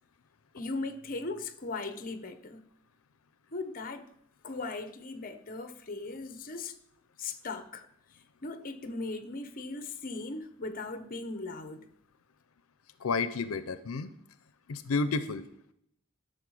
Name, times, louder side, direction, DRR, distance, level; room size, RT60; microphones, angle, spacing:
voice 1, 0.5-2.6 3.5-4.1 4.4-6.8 7.2-7.8 8.4-11.9, left 3 dB, 45° left, 0.8 m, -38 dB
voice 2, 13.0-14.1 14.7-15.4, left 4 dB, 85° left, 0.5 m, -31 dB
12.0 x 6.5 x 4.8 m
head